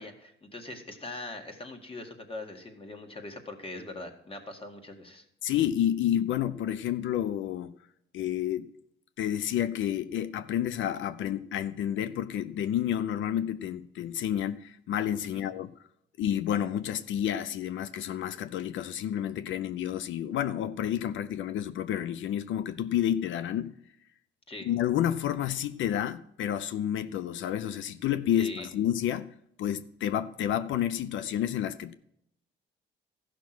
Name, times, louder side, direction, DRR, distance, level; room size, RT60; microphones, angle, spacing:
voice 1, 0.0-5.3 15.3-15.4 24.5-24.7 28.4-28.7, left 2 dB, 30° left, 2.0 m, -42 dB
voice 2, 5.4-7.7 8.1-8.7 9.2-15.7 16.2-23.8 24.7-31.9, left 10 dB, 75° left, 0.6 m, -30 dB
13.5 x 6.0 x 6.0 m
cardioid pair, 90°, 20 cm